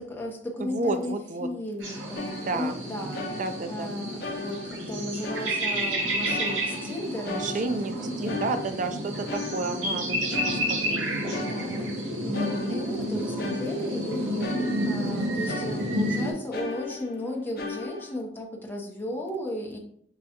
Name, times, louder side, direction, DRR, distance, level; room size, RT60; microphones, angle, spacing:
voice 1, 0.0-1.1 1.4-7.6 8.2-8.5 11.4-19.8, left 1 dB, 10° left, -1 dB, 0.7 m, -35 dB
voice 2, 0.6-1.5 2.4-2.7 3.4-4.0 7.2-10.6 10.9-11.6, right 3 dB, 40° right, 8 dB, 0.4 m, -31 dB
sound 1, 1.8-16.3, equal, 80° right, 1.0 m, -30 dB
sound 2, 2.1-2.9 3.1-3.9 4.2-5.9 6.2-7.0 7.2-10.0 10.3-12.0 12.3-15.2 15.5-16.2 16.5-18.2, left 3 dB, 55° left, 0.7 m, -38 dB
6.2 x 2.2 x 2.8 m, 0.65 s
head